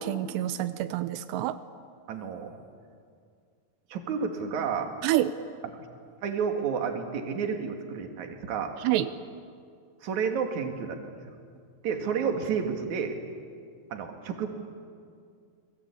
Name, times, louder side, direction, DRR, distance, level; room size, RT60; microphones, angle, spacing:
voice 1, 0.0-1.6 5.0-5.3 8.8-9.1, right 13 dB, 90° right, 12 dB, 3.0 m, -27 dB
voice 2, 2.1-2.5 3.9-4.9 5.8-5.9 6.2-8.8 10.0-11.0 11.8-13.2 13.9-14.5, right 6 dB, 50° right, 4 dB, 3.2 m, -30 dB
28.5 x 21.0 x 8.6 m, 2.2 s
omnidirectional pair, 4.8 m